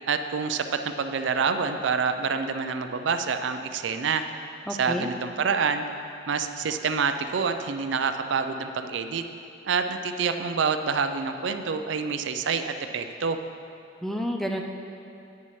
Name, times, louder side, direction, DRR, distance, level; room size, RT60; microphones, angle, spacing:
voice 1, 0.1-4.2 4.7-5.8 6.3-9.2 9.6-13.4, right 5 dB, 70° right, 8 dB, 0.4 m, -27 dB
voice 2, 4.7-5.1 14.0-14.6, equal, ahead, 2 dB, 0.4 m, -29 dB
9.8 x 9.5 x 3.1 m, 2.6 s
head